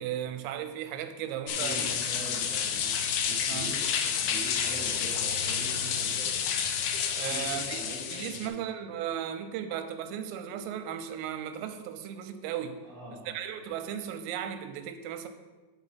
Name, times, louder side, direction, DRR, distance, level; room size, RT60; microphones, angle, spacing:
voice 1, 0.0-1.9 3.5-3.7 7.2-7.8 8.1-12.8 13.3-15.3, right 9 dB, 85° right, 8 dB, 3.3 m, -36 dB
sound 1, 1.5-8.5, left 7 dB, 90° left, 2.6 m, -30 dB
voice 2, 1.6-2.9 3.2-6.3 7.3-8.7 12.8-13.4, equal, 5° left, -8 dB, 0.3 m, -43 dB
11.0 x 4.8 x 4.1 m, 1.2 s
omnidirectional pair, 5.8 m